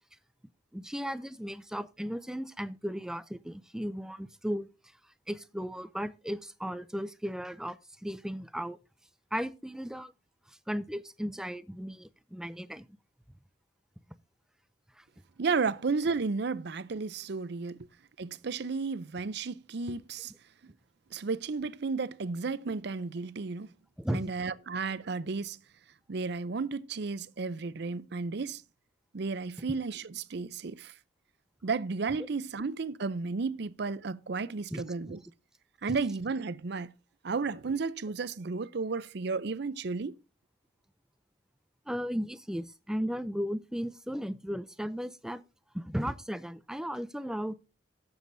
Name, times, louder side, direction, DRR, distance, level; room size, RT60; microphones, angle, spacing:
voice 1, 0.7-4.7 5.3-8.8 9.3-10.1 10.7-12.8 15.0-15.1 24.0-24.3 34.7-34.8 41.9-45.4 45.7-47.5, equal, 5° right, 0.4 m, -35 dB
voice 2, 15.4-17.9 18.2-20.3 21.1-23.7 24.1-25.6 26.1-28.6 29.1-30.9 31.6-35.2 35.8-36.9 37.2-40.2, right 4 dB, 60° right, 0.5 m, -33 dB
17.5 x 7.2 x 2.6 m
head